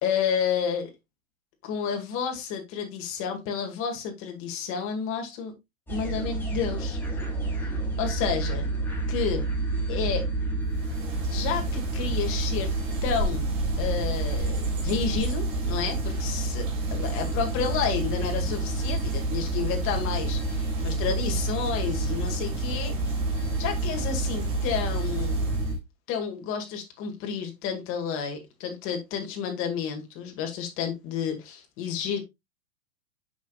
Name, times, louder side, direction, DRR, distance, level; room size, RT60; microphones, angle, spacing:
voice 1, 0.0-0.9 1.6-5.5 5.9-7.0 8.0-8.7 9.1-9.5 9.9-10.3 11.3-12.7 13.0-13.5 13.8-23.1 23.6-25.5 26.1-32.2, left 7 dB, 30° left, 2.1 m, -31 dB
sound 1, 5.9-25.8, right 2 dB, 5° left, 1.9 m, -29 dB
sound 2, 10.7-25.8, right 1 dB, 35° right, 2.4 m, -37 dB
8.1 x 6.1 x 2.4 m
hypercardioid pair, 140°, 41 cm